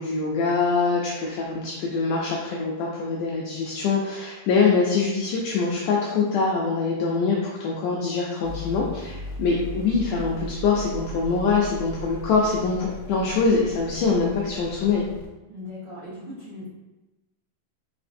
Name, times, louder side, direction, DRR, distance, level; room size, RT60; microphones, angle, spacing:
voice 1, 0.0-15.0, left 4 dB, 85° left, -2 dB, 1.8 m, -24 dB
sound 1, 8.4-15.3, right 1 dB, 70° left, 0.9 m, -37 dB
voice 2, 15.5-16.7, left 1 dB, 60° right, -12 dB, 1.2 m, -38 dB
4.9 x 4.2 x 2.6 m, 1.1 s
omnidirectional pair, 4.2 m